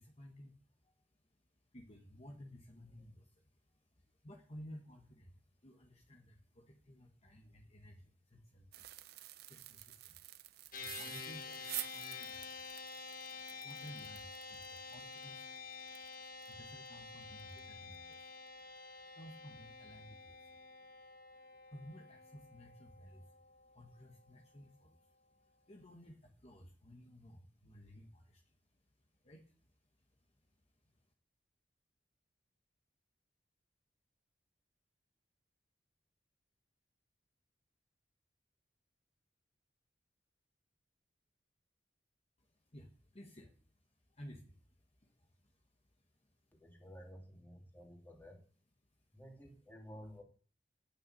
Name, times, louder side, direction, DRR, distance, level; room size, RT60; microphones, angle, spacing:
voice 1, 0.0-31.1 42.4-46.6 48.9-49.2, equal, 35° left, 1 dB, 1.4 m, -57 dB
sound 1, 8.7-16.5 16.9-17.0 17.4-17.6 17.9-18.1, right 15 dB, 60° right, 0.6 m, -49 dB
sound 2, 10.7-24.3, left 4 dB, 55° left, 1.4 m, -49 dB
voice 2, 46.5-48.4 49.1-50.2, equal, 10° left, 0 dB, 2.7 m, -53 dB
9.1 x 6.7 x 7.8 m, 0.41 s
head